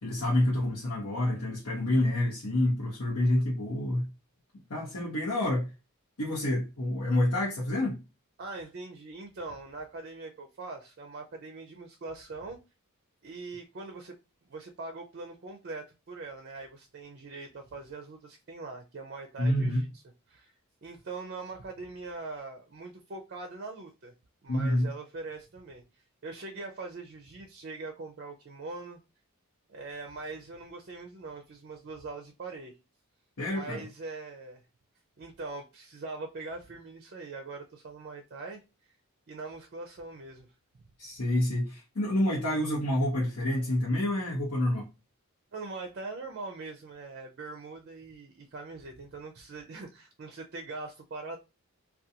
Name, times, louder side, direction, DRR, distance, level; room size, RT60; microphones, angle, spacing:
voice 1, 0.0-4.0 4.7-5.7 6.2-8.0 19.4-19.8 24.5-24.9 33.4-33.8 41.0-44.9, left 1 dB, 70° left, 0.9 m, -28 dB
voice 2, 8.4-12.6 13.2-14.2 14.5-20.0 20.3-20.5 20.8-24.1 24.4-29.0 29.7-32.8 33.5-34.6 35.2-38.9 39.3-40.5 45.5-51.4, right 3 dB, 45° right, 0.4 m, -42 dB
2.4 x 2.3 x 2.7 m
head